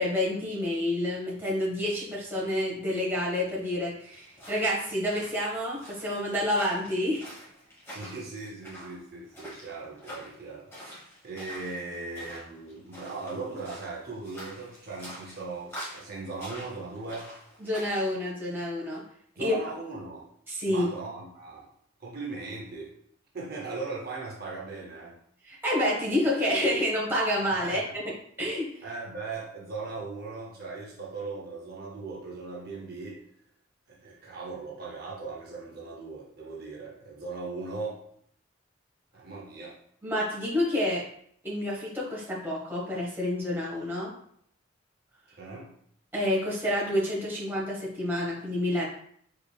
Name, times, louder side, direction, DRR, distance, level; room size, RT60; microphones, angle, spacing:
voice 1, 0.0-7.2 17.6-19.0 19.4-19.6 20.5-20.9 25.4-28.0 28.4-28.8 40.0-41.0 41.4-44.1 46.1-48.9, left 1 dB, 10° right, -5 dB, 0.9 m, -28 dB
sound 1, 4.3-18.1, equal, 10° left, 1.1 m, -46 dB
voice 2, 7.9-10.9 11.2-17.3 19.4-20.3 20.7-21.7 22.0-22.9 23.3-25.2 27.6-27.8 28.8-33.2 33.9-38.0 39.1-39.8 45.4-45.7, right 3 dB, 50° right, -3 dB, 0.6 m, -38 dB
3.6 x 3.3 x 2.2 m, 0.65 s
head